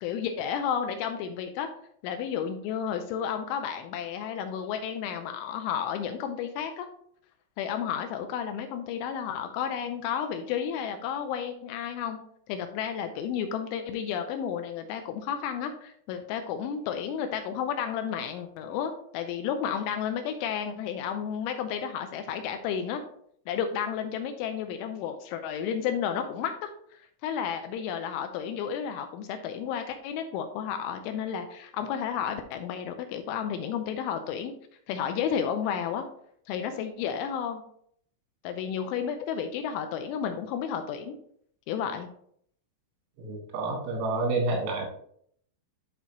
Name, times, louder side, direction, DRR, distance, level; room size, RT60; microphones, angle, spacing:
voice 1, 0.0-1.7 2.0-6.9 7.6-12.2 12.5-23.0 23.5-26.7 27.2-34.5 34.9-36.1 36.5-37.6 38.4-41.2 41.7-42.1, left 8 dB, 85° left, 6 dB, 2.9 m, -32 dB
voice 2, 43.2-44.9, right 3 dB, 85° right, 1 dB, 4.4 m, -29 dB
11.5 x 4.1 x 3.0 m, 0.64 s
omnidirectional pair, 5.8 m